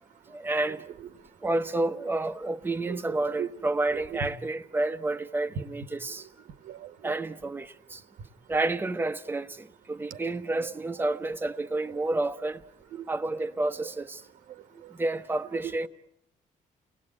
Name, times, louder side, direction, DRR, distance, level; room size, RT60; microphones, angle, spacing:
voice 1, 0.3-0.8 1.4-6.3 7.0-8.0 8.5-12.6 13.1-14.2 14.7-15.9, right 2 dB, 15° right, 1.0 m, -30 dB
voice 2, 3.9-4.3 6.7-7.2 10.1-10.7 13.0-13.1 15.6-15.9, right 8 dB, 80° right, 1.4 m, -38 dB
30.0 x 19.5 x 8.7 m
cardioid pair, 125°, 14 cm